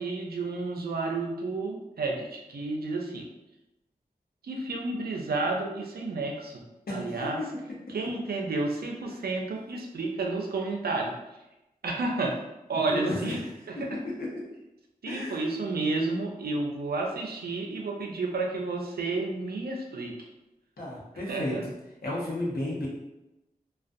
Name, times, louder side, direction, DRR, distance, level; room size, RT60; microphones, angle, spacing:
voice 1, 0.0-3.3 4.4-6.6 6.9-7.4 7.9-11.1 11.8-12.3 12.7-13.4 13.7-14.0 15.0-20.1 21.3-21.6, right 3 dB, 85° right, 0 dB, 0.4 m, -31 dB
voice 2, 6.9-7.4 12.9-13.4 13.8-14.4 15.0-15.4 20.8-21.5 22.0-22.9, left 1 dB, 80° left, -5 dB, 0.8 m, -33 dB
2.4 x 2.2 x 2.5 m, 0.95 s
cardioid pair, 45°, 16 cm